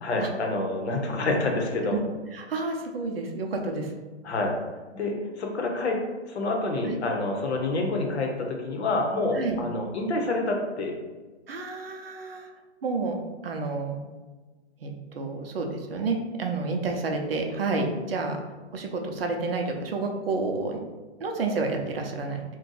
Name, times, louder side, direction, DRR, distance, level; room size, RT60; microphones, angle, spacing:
voice 1, 0.0-2.0 4.2-4.5 4.9-6.0 6.2-10.9, left 2 dB, 70° left, 2 dB, 0.8 m, -27 dB
voice 2, 2.3-3.9 6.8-7.0 9.3-9.6 11.5-12.5 12.8-13.2 13.4-14.0 14.8-18.4 18.7-20.8 21.2-22.4, right 3 dB, 55° right, 2 dB, 0.6 m, -30 dB
2.6 x 2.2 x 3.9 m, 1.2 s
hypercardioid pair, 170°, 35 cm